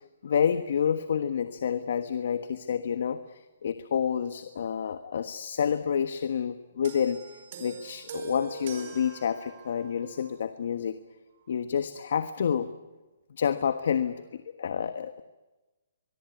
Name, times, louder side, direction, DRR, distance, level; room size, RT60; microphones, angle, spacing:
voice 1, 0.2-11.0 11.5-12.7 13.3-15.2, left 7 dB, 65° left, 10 dB, 1.3 m, -29 dB
sound 1, 6.8-10.4 11.3-11.5, right 6 dB, 50° right, 4.9 m, -44 dB
24.0 x 22.0 x 9.5 m, 1.1 s
hypercardioid pair, 140°, 0 cm